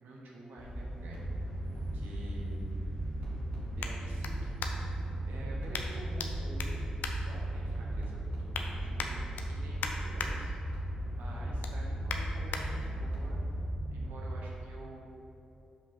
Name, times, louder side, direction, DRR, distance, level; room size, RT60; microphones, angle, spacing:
voice 1, 0.0-1.3 1.7-2.6 2.9-3.0 3.8-6.8 7.2-9.2 9.5-13.4 13.9-15.0, right 1 dB, 80° right, -3 dB, 1.1 m, -49 dB
sound 1, 0.6-13.7, right 1 dB, 25° left, 1.3 m, -39 dB
sound 2, 0.9-14.4, right 1 dB, 60° right, 1.5 m, -39 dB
sound 3, 3.8-5.1 5.7-6.3 6.6-7.9 8.2-8.7 9.0-10.3 10.7-11.0 11.3-12.6 13.2-13.3, left 6 dB, 80° left, 0.5 m, -41 dB
5.3 x 5.0 x 4.5 m, 2.9 s
supercardioid pair, 40°, 3 cm